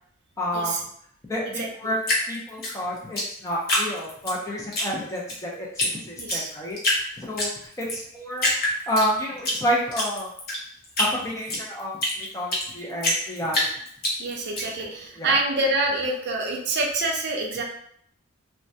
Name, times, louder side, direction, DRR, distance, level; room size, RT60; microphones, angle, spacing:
voice 1, 0.4-0.9 1.3-2.0 2.3-8.5 8.9-10.3 11.0-13.7 14.7-15.4, equal, 15° left, -3 dB, 0.5 m, -30 dB
Drip, 2.0-4.3 4.7-5.4 5.8-5.9 6.2-7.0 7.4-8.0 8.4-9.6 9.9-12.7 13.0-14.6, left 1 dB, 45° left, 0.7 m, -25 dB
voice 2, 6.2-6.5 14.2-17.6, right 2 dB, 55° right, 0 dB, 0.4 m, -26 dB
2.2 x 2.1 x 2.6 m, 0.66 s
head